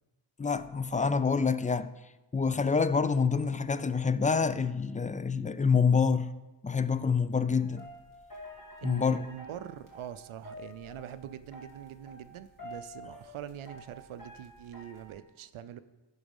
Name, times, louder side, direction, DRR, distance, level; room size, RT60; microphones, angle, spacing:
voice 1, 0.4-1.9 2.3-6.3 6.6-7.8 8.8-9.2, left 5 dB, 20° left, 0.3 m, -27 dB
sound 1, 7.6-15.1, equal, 40° left, 2.3 m, -49 dB
voice 2, 8.8-15.8, right 10 dB, 85° right, 0.5 m, -43 dB
11.0 x 4.1 x 5.3 m
cardioid pair, 55°, 48 cm